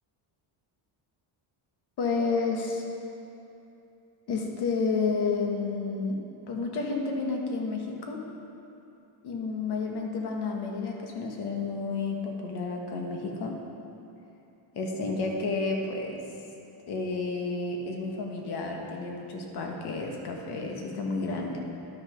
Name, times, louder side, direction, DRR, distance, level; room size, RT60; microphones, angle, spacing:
voice 1, 2.0-2.8 4.3-6.2 6.5-8.2 9.2-13.5 14.7-16.2 16.9-21.6, left 4 dB, 55° left, 1 dB, 1.4 m, -31 dB
11.0 x 6.6 x 5.1 m, 2.8 s
cardioid pair, 155°, 49 cm